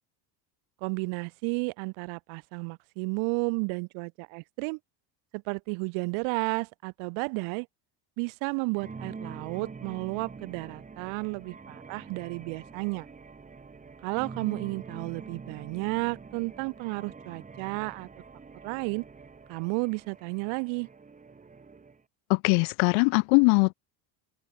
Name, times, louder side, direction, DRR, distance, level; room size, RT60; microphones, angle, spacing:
voice 1, 0.8-4.8 5.3-7.7 8.2-13.1 14.0-18.1 18.6-19.0 19.5-20.9, right 34 dB, 70° right, 1.9 m, -32 dB
sound 1, 8.7-22.0, right 4 dB, 15° right, 4.1 m, -45 dB
voice 2, 22.3-23.7, left 38 dB, 70° left, 0.9 m, -21 dB
open air
cardioid pair, 150°, 50 cm